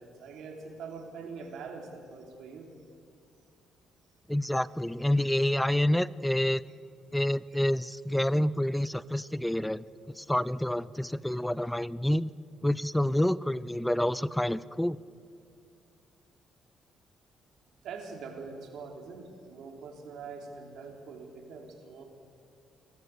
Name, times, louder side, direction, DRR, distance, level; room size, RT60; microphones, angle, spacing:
voice 1, 0.0-2.7 6.7-6.8 17.8-22.0, right 4 dB, 80° right, 3 dB, 3.2 m, -43 dB
voice 2, 4.3-6.6 7.1-9.8 10.2-12.3 12.6-15.0, left 1 dB, 5° left, 19 dB, 0.5 m, -28 dB
22.5 x 14.0 x 8.3 m, 2.3 s
cardioid pair, 90°, 0 cm